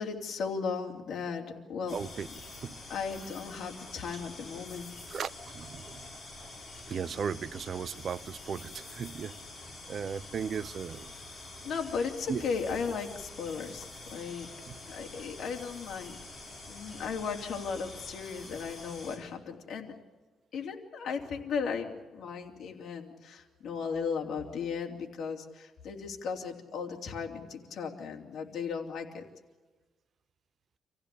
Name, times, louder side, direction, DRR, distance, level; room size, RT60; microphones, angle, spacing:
voice 1, 0.0-2.0 2.9-4.9 11.6-14.5 14.9-16.2 16.7-19.9 20.5-29.2, left 5 dB, 60° left, 3.2 m, -36 dB
sound 1, 1.9-19.2, left 2 dB, 20° left, 6.3 m, -47 dB
voice 2, 1.9-2.3 2.6-2.8 5.1-6.0 6.4-6.5 6.9-9.3 9.9-11.1 12.3-12.4 14.7-14.8, right 6 dB, 45° right, 0.7 m, -36 dB
26.5 x 16.0 x 8.5 m
cardioid pair, 130°, 0 cm